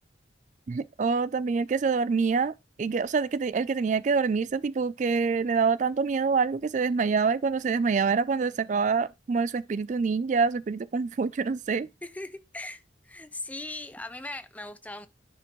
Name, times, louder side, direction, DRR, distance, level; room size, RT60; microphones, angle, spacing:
voice 1, 0.7-11.9, right 5 dB, 40° right, 0.3 m, -26 dB
voice 2, 12.0-15.1, left 2 dB, 10° left, 0.6 m, -39 dB
10.5 x 6.0 x 3.1 m
head